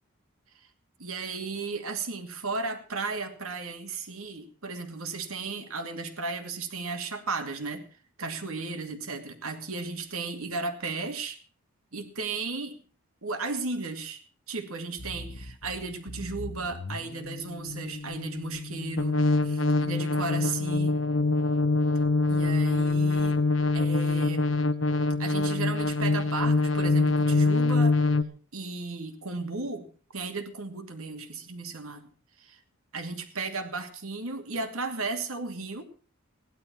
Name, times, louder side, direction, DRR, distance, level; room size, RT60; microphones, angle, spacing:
voice 1, 1.0-7.8 8.2-11.4 11.9-12.8 13.2-14.2 14.5-21.0 22.3-23.4 23.7-24.4 25.2-28.0 28.5-32.1 32.4-32.6 32.9-35.8, right 3 dB, 85° right, 6 dB, 2.7 m, -35 dB
sound 1, 15.0-28.2, left 3 dB, 65° left, 1.0 m, -25 dB
16.5 x 11.5 x 6.2 m, 0.40 s
head